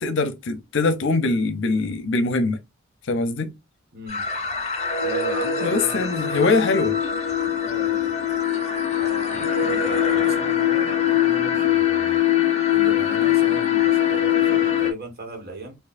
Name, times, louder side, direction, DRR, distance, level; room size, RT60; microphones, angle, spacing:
voice 1, 0.0-2.6 3.1-3.5 5.6-6.9, left 3 dB, 65° left, 0.7 m, -22 dB
voice 2, 3.9-4.2 5.0-6.5 7.4-8.1 8.9-12.2 12.7-15.7, right 1 dB, 55° right, 1.6 m, -37 dB
sound 1, 4.1-14.9, left 9 dB, 35° left, 0.8 m, -22 dB
4.4 x 2.7 x 2.5 m
head